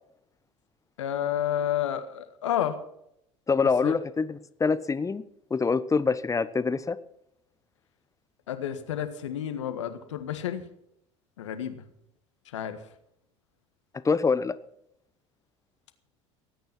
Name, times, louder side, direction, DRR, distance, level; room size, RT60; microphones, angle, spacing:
voice 1, 1.0-2.8 3.8-3.9 8.5-10.6 11.4-11.8 12.5-12.8, left 10 dB, 80° left, 9 dB, 1.6 m, -30 dB
voice 2, 3.5-5.2 5.5-7.0 14.0-14.6, left 4 dB, 20° left, 14 dB, 1.0 m, -25 dB
19.5 x 9.4 x 6.0 m, 0.76 s
hypercardioid pair, 70°, 15 cm